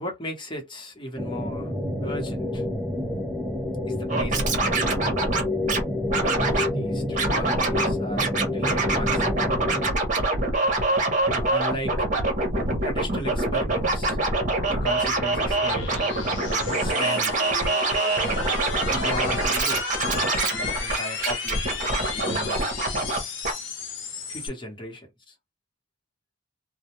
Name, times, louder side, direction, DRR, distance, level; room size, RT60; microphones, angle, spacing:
voice 1, 0.0-1.7 2.0-2.6 3.9-4.5 6.2-9.3 11.3-12.0 12.8-14.2 14.7-15.9 16.5-17.4 18.9-22.6 24.3-25.3, equal, 25° left, 1.0 m, -36 dB
sound 1, 1.2-9.9, left 1 dB, 5° right, 0.4 m, -28 dB
Scratching (performance technique), 4.1-5.8 6.1-6.7 7.1-7.9 8.2-23.2 23.4-23.5, right 2 dB, 40° right, 0.9 m, -25 dB
sound 2, 11.2-24.5, left 4 dB, 75° left, 0.7 m, -34 dB
2.3 x 2.1 x 2.9 m
head